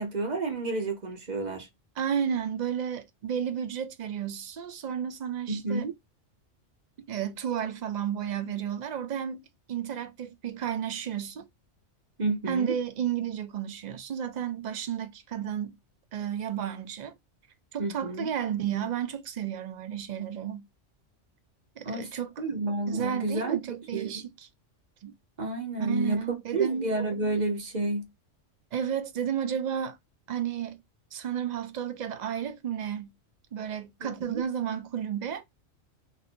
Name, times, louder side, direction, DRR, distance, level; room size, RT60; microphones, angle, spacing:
voice 1, 0.0-1.7 5.5-5.9 12.2-12.7 17.8-18.3 21.8-22.1 22.4-23.6 23.9-24.2 25.4-26.3 26.5-28.1 34.0-34.4, right 2 dB, 45° right, 0.8 m, -30 dB
voice 2, 2.0-5.9 7.0-9.4 9.7-11.5 12.5-15.8 16.1-17.1 17.7-20.6 21.8-24.5 25.0-25.1 25.8-26.9 28.7-30.0 30.3-30.8 31.1-33.1 33.5-35.4, right 8 dB, 70° right, 0.4 m, -32 dB
2.6 x 2.5 x 4.2 m
omnidirectional pair, 1.3 m